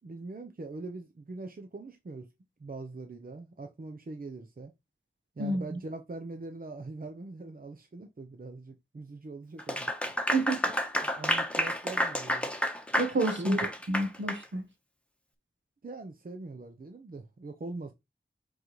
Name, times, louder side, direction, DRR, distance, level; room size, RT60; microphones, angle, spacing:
voice 1, 0.0-2.3 2.6-4.7 5.4-9.9 11.0-12.5 13.4-13.7 15.8-17.9, right 3 dB, 50° right, 0.8 m, -42 dB
voice 2, 5.4-5.8 10.3-10.6 13.0-13.6 13.9-14.6, right 2 dB, 80° right, 1.4 m, -29 dB
Clapping / Applause, 9.6-14.4, equal, 5° left, 1.2 m, -30 dB
7.5 x 4.0 x 3.2 m
wide cardioid pair, 55°, 19 cm